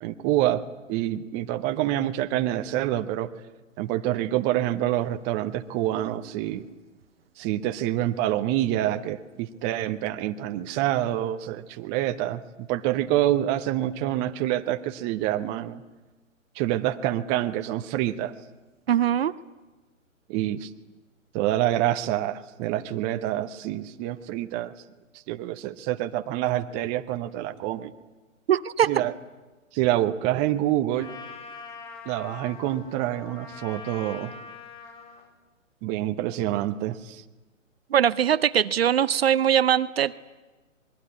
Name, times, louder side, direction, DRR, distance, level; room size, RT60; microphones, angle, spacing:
voice 1, 0.0-3.3 3.8-6.7 7.4-15.8 16.6-18.3 20.3-20.7 21.3-24.7 25.3-27.9 28.9-29.1 29.7-31.1 32.1-34.3 35.8-37.2, right 13 dB, 20° right, 8 dB, 0.8 m, -27 dB
voice 2, 18.9-19.3 28.5-29.0 37.9-40.1, right 9 dB, 50° right, 15 dB, 0.8 m, -21 dB
Trumpet, 31.0-35.3, left 4 dB, 35° left, 3.8 m, -43 dB
25.5 x 21.5 x 9.7 m, 1.2 s
figure-of-eight pair, 130°, 40 cm